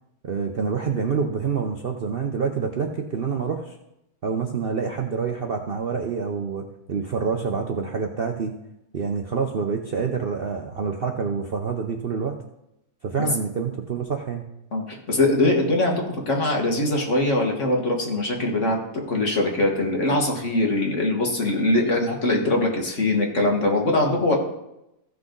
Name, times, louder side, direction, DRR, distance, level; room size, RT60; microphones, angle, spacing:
voice 1, 0.2-3.8 4.2-8.5 8.9-12.4 13.0-14.4, right 5 dB, 50° right, 2 dB, 0.7 m, -27 dB
voice 2, 14.7-18.8 19.1-24.4, left 2 dB, 50° left, 1 dB, 2.0 m, -22 dB
15.5 x 6.1 x 3.9 m, 0.86 s
omnidirectional pair, 1.7 m